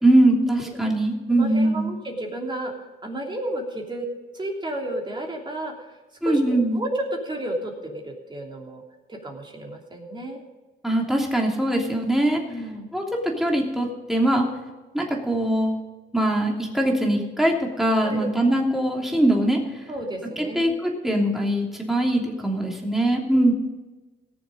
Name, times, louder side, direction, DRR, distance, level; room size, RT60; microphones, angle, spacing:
voice 1, 0.0-1.9 6.2-6.8 10.8-12.4 12.9-14.5 14.9-15.8 16.1-19.9 20.4-23.5, right 1 dB, ahead, -1 dB, 3.0 m, -22 dB
voice 2, 1.3-2.7 3.0-4.1 4.3-5.7 6.2-8.8 9.1-10.4 12.5-13.0 14.4-14.5 18.0-18.3 19.9-20.7 23.3-23.5, right 1 dB, 25° right, 1 dB, 3.0 m, -32 dB
18.0 x 7.2 x 5.2 m, 1.2 s
cardioid pair, 90°, 20 cm